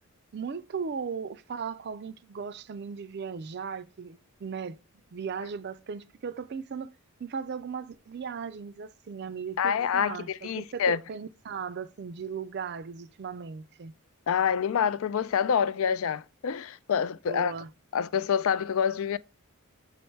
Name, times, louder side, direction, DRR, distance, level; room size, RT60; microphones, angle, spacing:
voice 1, 0.3-4.8 5.1-6.9 7.2-10.3 10.6-13.9 17.3-17.7, right 6 dB, 45° right, 0.4 m, -37 dB
voice 2, 9.6-11.0 14.3-17.5 17.9-19.2, left 7 dB, 65° left, 0.3 m, -27 dB
7.0 x 4.5 x 3.1 m
head